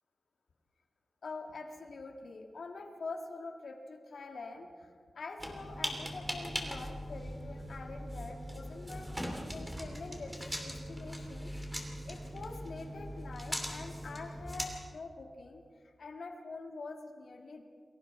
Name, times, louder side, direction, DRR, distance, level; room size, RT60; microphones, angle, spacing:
voice 1, 1.2-9.1 9.5-10.3 10.6-11.6 12.0-17.6, left 3 dB, 80° left, 3 dB, 1.9 m, -45 dB
sound 1, 5.4-14.7, equal, 5° right, 3.0 m, -40 dB
29.5 x 22.0 x 4.4 m, 2.1 s
wide cardioid pair, 135°, 0 cm